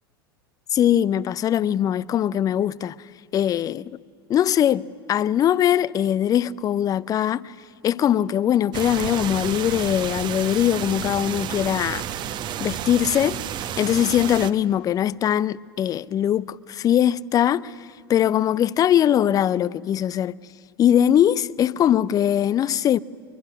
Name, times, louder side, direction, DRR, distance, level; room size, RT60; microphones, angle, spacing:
voice 1, 0.7-3.0 3.3-3.9 4.3-7.5 7.8-12.0 12.6-13.4 13.8-17.7 18.1-20.3 20.8-23.0, left 10 dB, 30° left, 0.6 m, -21 dB
sound 1, 8.7-14.5, right 10 dB, 35° right, 1.1 m, -31 dB
24.0 x 21.5 x 9.9 m
figure-of-eight pair, 80°, 13 cm